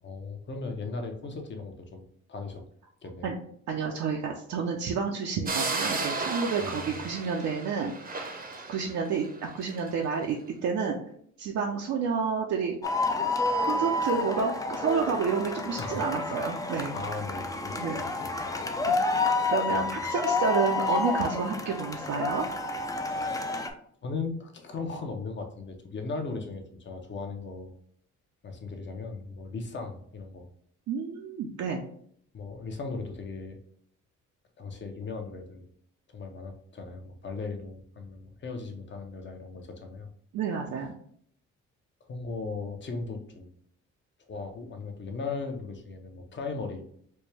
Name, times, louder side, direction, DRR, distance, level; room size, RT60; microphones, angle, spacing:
voice 1, 0.0-2.6 3.0-3.3 6.6-7.0 15.8-16.0 16.9-18.7 19.2-19.9 23.1-23.5 24.0-27.7 28.4-30.5 32.3-33.6 34.6-35.6 36.1-40.1 42.0-43.5 44.3-46.8, left 4 dB, 40° left, 4 dB, 0.7 m, -38 dB
voice 2, 3.7-7.9 8.7-11.0 11.4-12.7 13.6-17.0 17.8-18.0 18.9-22.4 30.9-31.8 40.3-41.0, right 5 dB, 65° right, 0 dB, 0.6 m, -30 dB
sound 1, 5.5-9.9, right 3 dB, 30° right, 0.7 m, -34 dB
sound 2, 12.8-23.7, left 3 dB, 10° left, 0.4 m, -29 dB
4.3 x 2.2 x 3.2 m, 0.65 s
cardioid pair, 90°, 30 cm